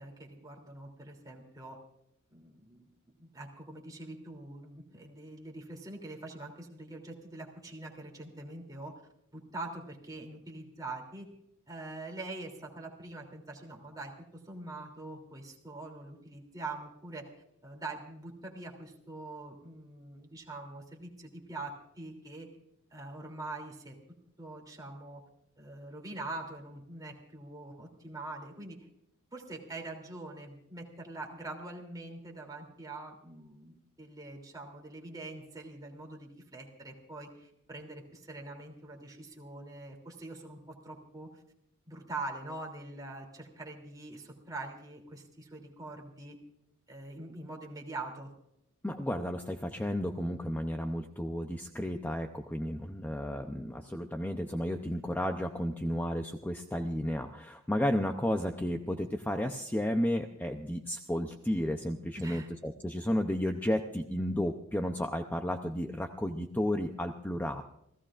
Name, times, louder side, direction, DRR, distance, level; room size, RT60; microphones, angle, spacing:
voice 1, 0.0-1.8 2.3-8.9 9.3-11.3 11.7-17.3 17.6-22.5 22.9-24.0 24.4-25.2 25.6-28.8 29.3-41.4 41.9-46.4 46.9-48.3 62.2-62.5, right 2 dB, 15° right, 0 dB, 3.0 m, -44 dB
voice 2, 48.8-67.6, equal, 10° left, 5 dB, 0.6 m, -33 dB
28.5 x 16.5 x 2.5 m, 0.77 s
head